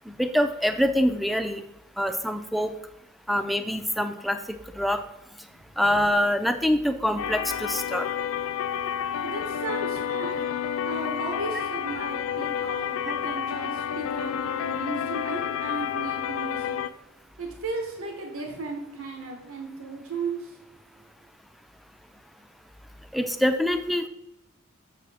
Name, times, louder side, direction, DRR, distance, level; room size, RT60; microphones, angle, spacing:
voice 1, 0.1-1.6 2.0-2.7 3.3-4.4 4.8-5.0 5.8-8.1 23.1-24.1, equal, ahead, 8 dB, 0.4 m, -25 dB
sound 1, 7.2-16.9, left 8 dB, 70° left, 0.3 m, -30 dB
voice 2, 9.2-16.8 17.4-20.8, right 3 dB, 80° right, 2 dB, 1.2 m, -35 dB
6.5 x 6.2 x 3.5 m, 0.83 s
head